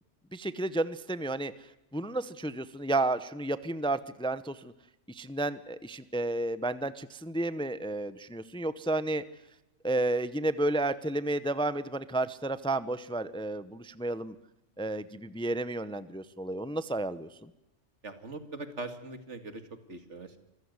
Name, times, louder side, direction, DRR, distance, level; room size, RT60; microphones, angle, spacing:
voice 1, 0.3-1.5 1.9-4.7 5.1-9.2 9.8-14.3 14.8-17.5, right 2 dB, 5° left, 15 dB, 0.7 m, -32 dB
voice 2, 18.0-20.4, right 2 dB, 75° right, 9 dB, 2.5 m, -41 dB
26.5 x 15.0 x 9.6 m, 0.92 s
omnidirectional pair, 1.2 m